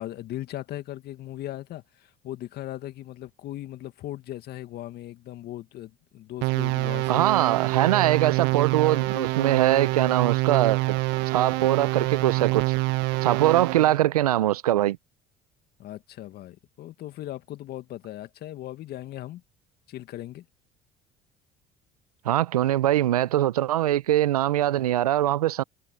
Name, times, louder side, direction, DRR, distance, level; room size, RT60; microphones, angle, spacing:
voice 1, 0.0-7.3 7.9-8.1 15.8-19.4 19.9-20.4, left 14 dB, 60° left, 2.3 m, -38 dB
sound 1, 6.4-14.0, right 22 dB, 70° right, 1.4 m, -26 dB
voice 2, 7.1-11.0 11.3-12.7 13.2-15.0 22.2-25.6, right 13 dB, 90° right, 0.9 m, -22 dB
hypercardioid pair, 60°, 19 cm